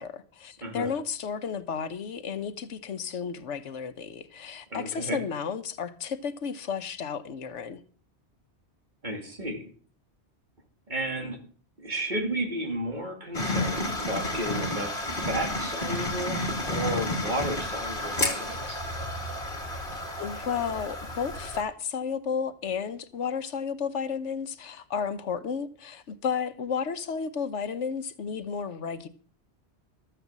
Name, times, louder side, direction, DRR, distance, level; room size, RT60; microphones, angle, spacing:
voice 1, 0.0-7.8 20.2-29.1, left 6 dB, 85° left, 1.2 m, -32 dB
voice 2, 0.6-0.9 4.7-5.2 9.0-9.6 10.9-11.4 11.8-16.4 16.7-18.8, right 1 dB, 40° right, 3.0 m, -33 dB
sound 1, 13.3-21.6, left 1 dB, 45° left, 2.6 m, -31 dB
13.5 x 6.8 x 7.4 m
omnidirectional pair, 1.2 m